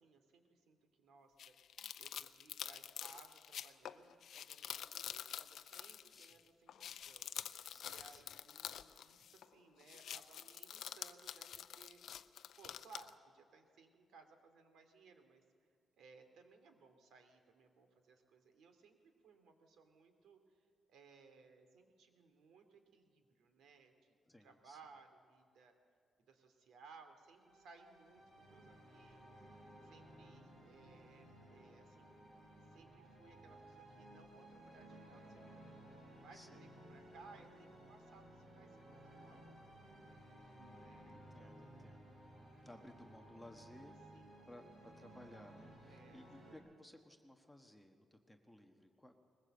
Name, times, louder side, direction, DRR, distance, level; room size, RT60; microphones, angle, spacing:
voice 1, 0.0-1.5 2.0-12.1 12.6-15.7 16.0-24.2 24.4-25.7 26.2-32.2 32.7-35.7 36.1-39.7 40.7-41.9 44.1-44.5 45.9-46.3, right 4 dB, 90° right, 6 dB, 2.5 m, -63 dB
sound 1, 1.4-6.4 6.7-9.5 9.8-13.1, left 9 dB, 65° left, 0.6 m, -48 dB
voice 2, 7.7-8.2 24.2-24.8 36.3-36.7 40.6-42.2 42.6-44.0 44.4-49.2, left 1 dB, ahead, 4 dB, 1.2 m, -59 dB
sound 2, 27.2-46.6, right 1 dB, 40° right, 6.2 m, -58 dB
21.0 x 20.5 x 7.9 m, 2.2 s
wide cardioid pair, 175°, 0 cm